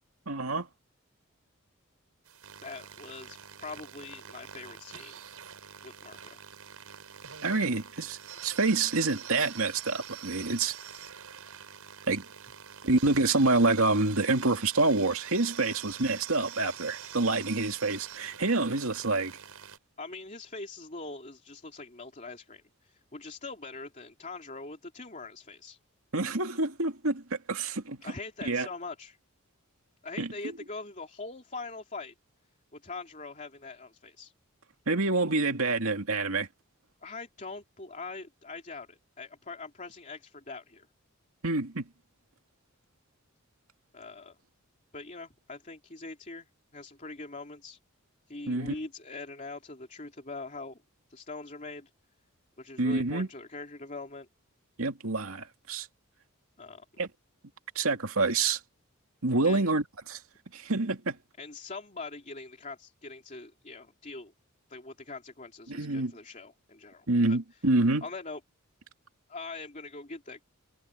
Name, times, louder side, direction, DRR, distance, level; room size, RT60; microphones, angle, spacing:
voice 1, 0.3-0.7 7.4-10.7 12.1-12.3 12.8-19.3 26.1-28.1 28.5-28.7 30.2-30.3 34.9-36.5 41.4-41.9 48.5-48.7 52.8-53.3 54.8-55.9 57.0-57.1 57.8-58.6 59.2-60.2 60.5-61.2 65.7-66.1 67.1-68.0, right 3 dB, 75° right, 2.5 m, -27 dB
sound 1, 2.2-19.8, right 8 dB, 90° right, 5.7 m, -46 dB
voice 2, 2.6-5.2 5.8-6.4 20.0-25.8 28.0-29.2 30.0-32.1 32.7-34.3 37.0-40.9 43.9-44.3 44.9-46.5 46.7-47.8 48.3-50.8 51.1-51.9 52.6-54.3 56.6-56.8 59.4-59.7 61.4-64.3 64.7-67.4 68.0-68.4 69.3-70.4, left 3 dB, 35° left, 3.1 m, -43 dB
head